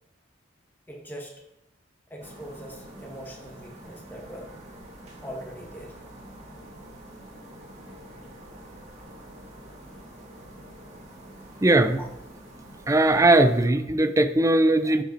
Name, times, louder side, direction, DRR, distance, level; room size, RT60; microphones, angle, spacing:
voice 1, 0.9-1.4 2.1-4.5 5.2-6.0 12.0-12.1, equal, 10° left, 0 dB, 1.7 m, -41 dB
sound 1, 2.2-13.7, right 1 dB, 35° right, 2.0 m, -46 dB
voice 2, 11.6-12.0 12.9-15.0, right 2 dB, 15° right, 10 dB, 0.5 m, -19 dB
11.5 x 5.2 x 4.5 m, 0.87 s
head